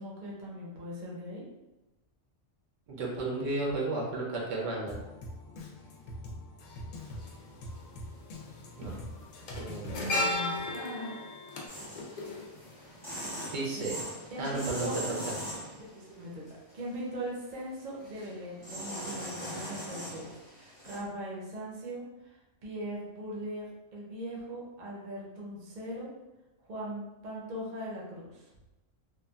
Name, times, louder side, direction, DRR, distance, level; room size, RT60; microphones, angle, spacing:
voice 1, 0.0-1.4 9.9-11.1 13.5-13.8 14.3-15.2 15.9-16.4 16.7-22.4 22.6-23.7 23.9-26.1 26.7-28.5, equal, 45° right, -4 dB, 0.7 m, -40 dB
voice 2, 2.9-5.0 8.8-9.0 9.5-10.1 13.5-13.9 14.4-14.9 15.3-15.4, right 2 dB, 75° right, -2 dB, 1.1 m, -33 dB
Drum kit, 4.9-10.4, left 1 dB, 85° left, 0.9 m, -44 dB
sound 1, 7.0-7.1 8.3-8.5 8.8-13.1 13.4-13.6, left 2 dB, 65° left, 0.4 m, -35 dB
sound 2, 11.7-16.1 16.5-17.1 18.0-18.3 18.6-21.0, equal, 20° left, 0.8 m, -41 dB
3.1 x 2.3 x 2.3 m, 1.0 s
omnidirectional pair, 1.3 m